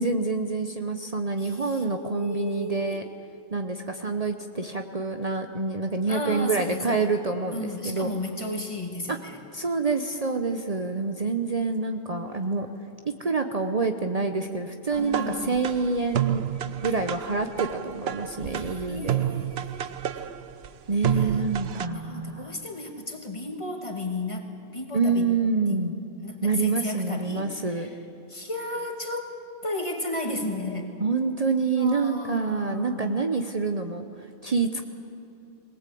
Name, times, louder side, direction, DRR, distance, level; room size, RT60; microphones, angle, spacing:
voice 1, 0.0-3.0 3.5-8.1 9.1-9.2 9.5-12.7 13.0-16.4 16.8-19.2 20.9-22.6 24.9-25.9 26.4-27.9 31.0-34.8, right 4 dB, 40° right, 6 dB, 0.9 m, -27 dB
voice 2, 1.4-3.0 6.1-7.0 7.5-9.4 12.3-12.7 15.0-15.6 18.4-20.3 21.1-21.5 21.9-24.5 24.7-25.3 25.7-25.8 26.2-27.9 28.3-30.9 31.8-33.3, left 1 dB, 30° left, 3 dB, 2.3 m, -34 dB
sound 1, 14.9-21.9, right 10 dB, 75° right, 1.0 m, -30 dB
21.5 x 18.5 x 8.5 m, 2.8 s
omnidirectional pair, 1.1 m